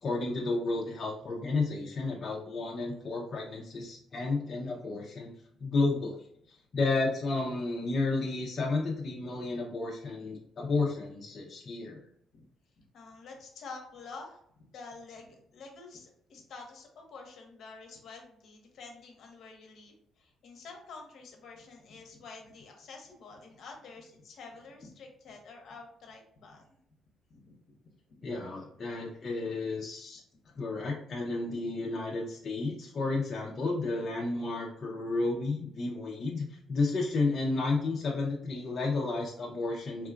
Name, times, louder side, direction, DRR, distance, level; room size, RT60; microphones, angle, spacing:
voice 1, 0.0-5.3 5.6-12.0 28.2-30.2 30.6-40.1, left 3 dB, 40° left, -2 dB, 0.5 m, -32 dB
voice 2, 12.9-14.4 14.7-26.7 27.3-27.5 28.2-28.3, left 4 dB, 60° left, 2 dB, 0.8 m, -48 dB
3.6 x 2.3 x 2.4 m, 0.69 s
cardioid pair, 120°, 0 cm